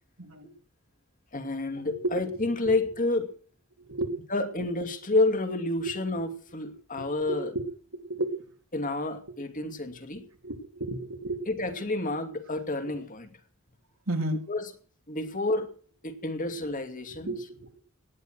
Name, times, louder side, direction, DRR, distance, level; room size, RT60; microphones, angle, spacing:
voice 1, 0.2-0.5 2.0-2.4 3.8-4.2 5.8-5.9 7.0-7.7 7.9-8.5 10.4-11.5 14.1-14.4 17.1-17.8, right 2 dB, 80° right, 5 dB, 3.3 m, -33 dB
voice 2, 1.3-3.3 4.3-7.5 8.7-10.3 11.5-13.3 14.5-14.6 15.1-15.7 16.0-17.3, left 2 dB, 40° left, 8 dB, 2.6 m, -29 dB
18.5 x 11.0 x 6.4 m, 0.42 s
head